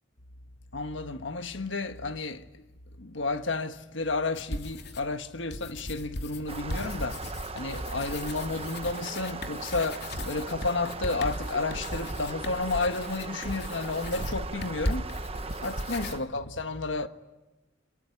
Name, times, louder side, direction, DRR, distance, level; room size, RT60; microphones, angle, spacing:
voice 1, 0.7-2.6 3.0-7.2 7.5-15.1 15.6-17.1, left 3 dB, 80° left, 1.6 m, -32 dB
sound 1, 4.3-5.1 5.5-16.2, left 1 dB, 60° left, 3.0 m, -38 dB
sound 2, 6.5-16.2, right 3 dB, 30° right, 1.1 m, -37 dB
26.5 x 23.0 x 9.8 m
head